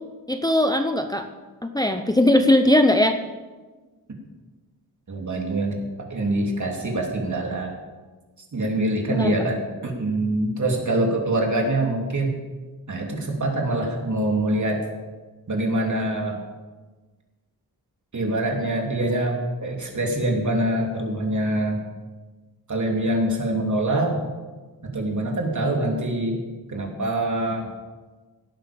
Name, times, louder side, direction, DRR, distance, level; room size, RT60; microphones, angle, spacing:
voice 1, 0.3-1.3 1.6-3.2 9.1-9.3, left 1 dB, 10° left, 6 dB, 0.7 m, -19 dB
voice 2, 5.1-7.8 8.5-12.3 12.9-14.8 15.5-16.4 18.1-21.8 22.7-24.1 24.8-26.4 26.7-27.7, right 1 dB, 45° right, 1 dB, 3.2 m, -24 dB
17.0 x 12.0 x 5.3 m, 1.3 s
wide cardioid pair, 110°, 39 cm